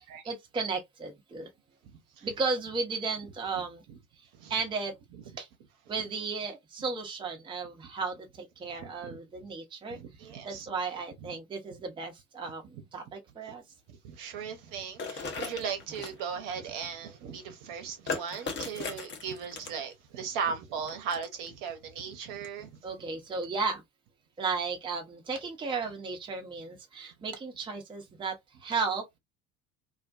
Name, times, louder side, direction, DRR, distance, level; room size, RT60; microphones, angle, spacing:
voice 1, 0.3-1.5 2.2-3.8 4.2-4.9 5.4-5.5 5.9-10.0 10.4-13.6 22.8-23.8 24.4-29.2, right 4 dB, 10° right, 0.6 m, -34 dB
voice 2, 1.8-2.3 4.3-4.5 5.1-5.2 8.8-9.2 9.9-10.7 11.2-11.3 13.9-22.8, right 6 dB, 50° right, 0.8 m, -38 dB
sound 1, 15.0-16.2 18.1-19.9 20.9-21.5 22.4-22.5 23.3-23.4, left 4 dB, 25° left, 0.7 m, -37 dB
2.5 x 2.1 x 2.4 m
figure-of-eight pair, 65°, 42 cm